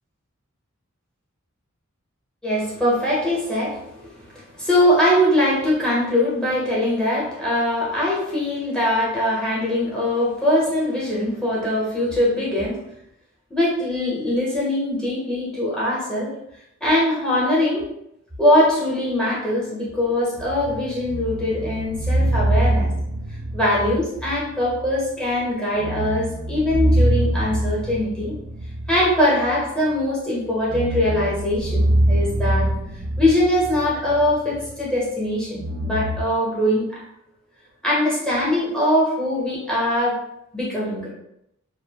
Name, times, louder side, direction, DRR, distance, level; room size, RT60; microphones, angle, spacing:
voice 1, 2.4-12.8 13.5-16.3 16.8-17.8 18.4-22.9 23.5-28.3 28.9-32.7 33.2-36.8 37.8-40.2 40.5-41.1, left 1 dB, 5° left, -6 dB, 0.8 m, -22 dB
sound 1, 20.4-25.0 25.3-25.4 25.7-30.0 30.5-34.8 35.6-36.2, right 1 dB, 40° right, 0.5 m, -24 dB
2.5 x 2.1 x 2.8 m, 0.79 s
head